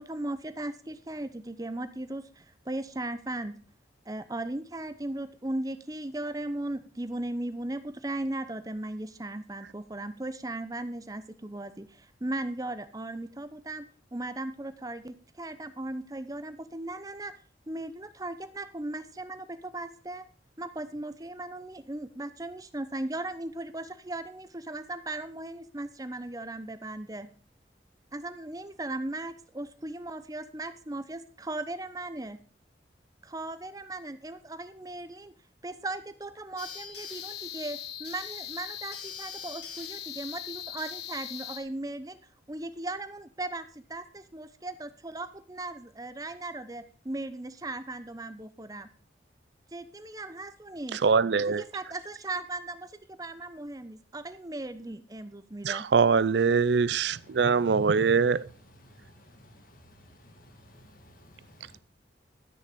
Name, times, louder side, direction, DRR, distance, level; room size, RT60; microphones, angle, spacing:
voice 1, 0.0-3.6 4.1-13.9 14.1-17.4 17.7-20.2 20.6-27.3 28.1-32.4 33.2-35.3 35.6-42.2 42.5-43.6 43.9-48.9 49.7-51.0 51.5-55.9, right 2 dB, 20° right, 0.8 m, -37 dB
sound 1, 36.6-41.6, left 9 dB, 70° left, 2.1 m, -40 dB
voice 2, 50.9-51.6 55.6-58.5, right 5 dB, 75° right, 0.5 m, -23 dB
voice 3, 58.9-61.8, equal, 50° left, 1.8 m, -55 dB
13.0 x 6.6 x 6.8 m
head